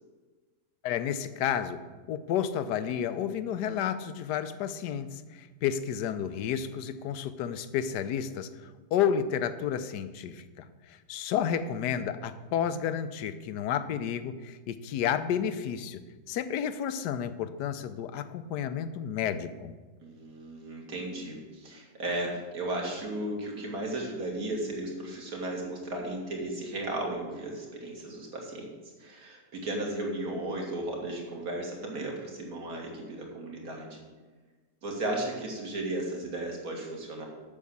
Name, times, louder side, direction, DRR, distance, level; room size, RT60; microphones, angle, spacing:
voice 1, 0.8-1.8 2.1-16.0 16.3-19.7, left 8 dB, 80° left, 12 dB, 1.2 m, -31 dB
voice 2, 20.0-28.7 29.0-34.0 34.8-37.3, right 1 dB, 60° right, 0 dB, 2.3 m, -35 dB
8.4 x 6.4 x 7.1 m, 1.3 s
omnidirectional pair, 1.8 m